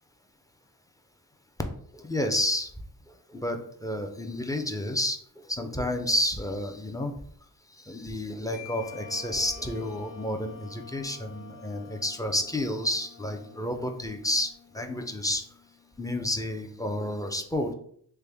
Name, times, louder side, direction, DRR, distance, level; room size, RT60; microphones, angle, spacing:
voice 1, 1.9-2.7 3.3-7.1 7.8-15.4 16.0-17.7, left 1 dB, 10° left, 4 dB, 0.4 m, -30 dB
Marimba xylophone, 8.5-10.3, left 14 dB, 35° left, 1.0 m, -49 dB
Wind instrument woodwind instrument, 8.6-16.0, left 4 dB, 50° left, 1.3 m, -49 dB
3.3 x 2.2 x 3.4 m, 0.63 s
cardioid pair, 60°, 39 cm